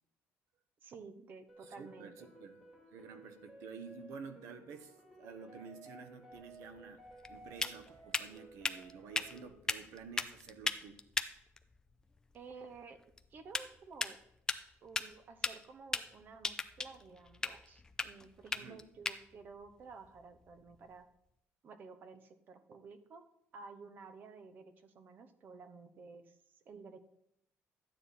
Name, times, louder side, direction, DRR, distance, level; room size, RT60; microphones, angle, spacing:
voice 1, 0.8-2.3 12.3-13.0 13.3-14.2 14.8-21.1 21.6-23.2 23.5-27.0, right 4 dB, 40° right, 0.9 m, -53 dB
sound 1, 1.5-9.5, right 1 dB, 10° right, 3.4 m, -56 dB
voice 2, 1.6-2.6 2.9-11.0 18.5-18.8, right 6 dB, 80° right, 1.1 m, -51 dB
sound 2, 6.3-21.0, left 3 dB, 15° left, 0.4 m, -41 dB
13.0 x 9.3 x 4.2 m
cardioid pair, 170°, 5 cm